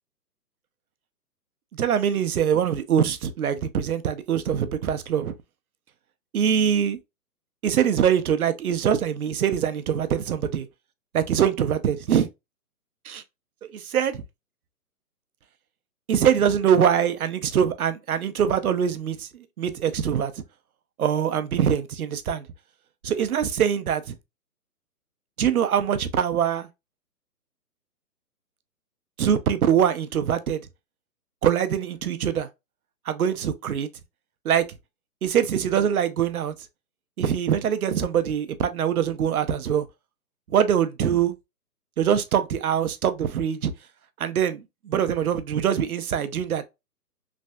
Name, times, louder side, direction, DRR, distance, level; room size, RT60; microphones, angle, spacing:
voice 1, 1.8-5.3 6.3-7.0 7.6-10.6 11.1-12.3 13.1-13.2 13.7-14.2 16.1-20.3 21.0-22.4 23.0-24.1 25.4-26.7 29.2-30.6 31.4-32.5 33.1-33.9 34.5-34.6 35.2-36.5 37.2-39.8 40.5-41.3 42.0-43.7 44.2-46.7, right 8 dB, 65° right, 0.5 m, -23 dB
3.3 x 2.2 x 2.4 m
hypercardioid pair, 180°, 47 cm